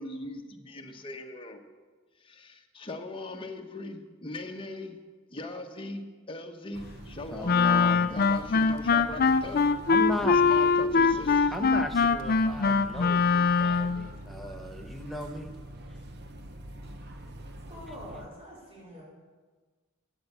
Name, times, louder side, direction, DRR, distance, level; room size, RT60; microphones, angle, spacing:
voice 1, 0.0-1.6 2.2-5.0 5.3-9.6 10.2-11.6, left 2 dB, 25° left, 3 dB, 1.1 m, -40 dB
sound 1, 6.7-18.3, right 1 dB, 55° right, 1.0 m, -45 dB
voice 2, 7.3-8.1 9.9-10.4 11.5-15.5, equal, ahead, 3 dB, 0.9 m, -36 dB
Wind instrument woodwind instrument, 7.4-14.1, left 5 dB, 45° left, 0.5 m, -23 dB
voice 3, 17.7-19.0, equal, 30° right, -7 dB, 4.5 m, -45 dB
13.0 x 8.3 x 6.7 m, 1.4 s
head